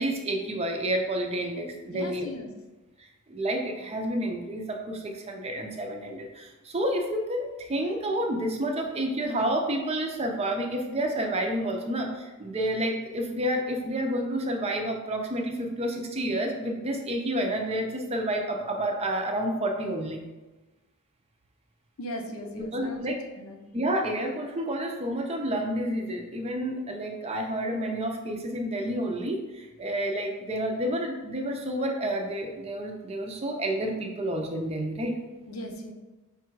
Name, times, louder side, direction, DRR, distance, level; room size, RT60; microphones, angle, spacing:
voice 1, 0.0-2.3 3.0-20.2 22.6-23.2 23.7-35.1, right 1 dB, 30° right, 3 dB, 0.5 m, -30 dB
voice 2, 1.9-2.5 22.0-23.1 23.4-23.6 35.5-35.9, left 1 dB, 70° left, 3 dB, 0.6 m, -38 dB
4.8 x 2.3 x 4.5 m, 1.1 s
head